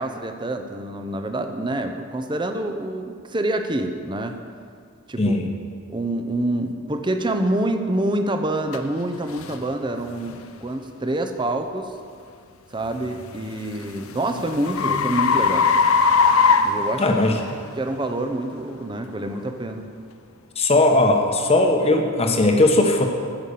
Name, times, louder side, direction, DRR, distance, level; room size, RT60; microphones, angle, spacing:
voice 1, 0.0-4.3 5.1-5.4 5.9-11.9 12.7-15.7 16.6-17.0 17.8-19.9, right 1 dB, 25° right, 6 dB, 0.8 m, -26 dB
voice 2, 5.2-5.5 17.0-17.3 20.6-23.1, left 2 dB, 30° left, 3 dB, 1.1 m, -18 dB
sound 1, 8.7-8.8 9.4-9.6 10.2-10.4 13.0-17.5, left 5 dB, 85° left, 0.7 m, -20 dB
15.0 x 5.6 x 6.7 m, 2.2 s
head